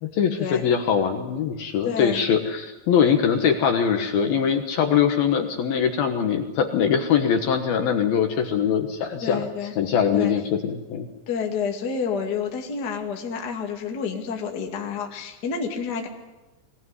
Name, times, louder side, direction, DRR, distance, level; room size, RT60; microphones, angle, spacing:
voice 1, 0.0-9.4 9.8-11.1, left 7 dB, 65° left, 5 dB, 2.7 m, -22 dB
voice 2, 1.8-2.2 9.2-9.7 10.1-10.3 11.3-16.1, left 6 dB, 35° left, 2 dB, 1.6 m, -29 dB
22.5 x 18.5 x 9.6 m, 1.1 s
omnidirectional pair, 5.5 m